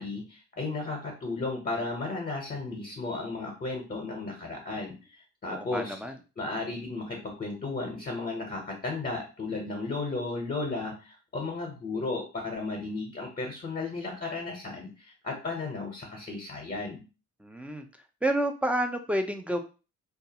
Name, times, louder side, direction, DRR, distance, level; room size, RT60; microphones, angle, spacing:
voice 1, 0.0-5.9 6.4-17.1, left 3 dB, 30° left, 1 dB, 0.7 m, -34 dB
voice 2, 5.5-6.1 17.4-17.8 18.2-19.6, right 1 dB, 5° right, 5 dB, 0.4 m, -29 dB
2.3 x 2.3 x 2.8 m, 0.32 s
cardioid pair, 90°, 30 cm